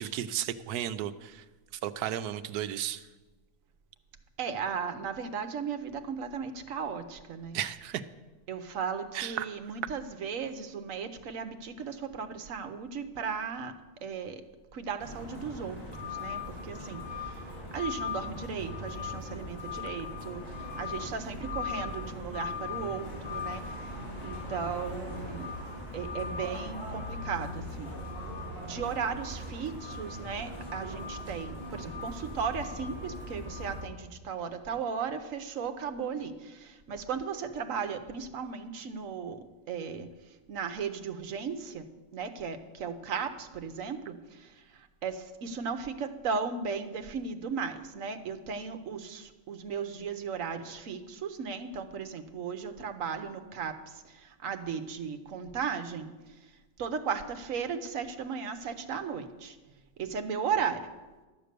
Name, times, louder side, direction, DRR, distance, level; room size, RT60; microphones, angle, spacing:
voice 1, 0.0-1.4 1.8-3.0 7.5-8.0 9.1-9.5, right 11 dB, 85° right, 12 dB, 1.1 m, -34 dB
voice 2, 4.4-7.6 8.5-13.7 14.0-14.3 14.7-15.8 16.2-16.4 16.7-17.0 17.7-20.4 20.8-23.6 24.2-25.5 25.9-27.9 28.6-34.0 34.2-36.3 36.9-39.4 39.7-40.1 40.5-41.8 42.1-44.1 45.0-49.2 49.5-53.7 54.4-56.1 56.8-59.5 60.0-60.8, right 6 dB, 60° right, 9 dB, 1.1 m, -35 dB
City Sidewalk Noise & Reversing Truck Beeps, 15.0-33.8, left 3 dB, 40° left, 3.5 m, -39 dB
12.0 x 7.9 x 6.7 m, 1.2 s
omnidirectional pair, 1.7 m